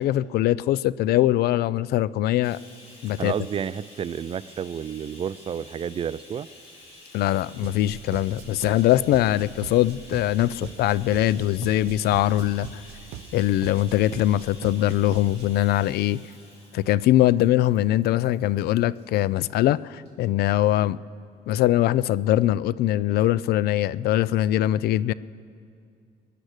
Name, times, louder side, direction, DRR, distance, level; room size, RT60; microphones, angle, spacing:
voice 1, 0.0-2.6 3.0-3.3 7.1-12.7 13.3-16.2 16.7-21.0 21.5-25.1, left 13 dB, 70° left, 20 dB, 0.4 m, -22 dB
Bathtub (filling or washing), 2.4-19.1 20.0-20.1 20.5-20.6, left 2 dB, 35° left, 3.3 m, -49 dB
voice 2, 3.2-6.5, right 8 dB, 35° right, 18 dB, 0.4 m, -30 dB
sound 1, 7.6-15.6, right 10 dB, 75° right, 0.7 m, -41 dB
22.0 x 10.0 x 6.5 m, 2.3 s
cardioid pair, 110°, 17 cm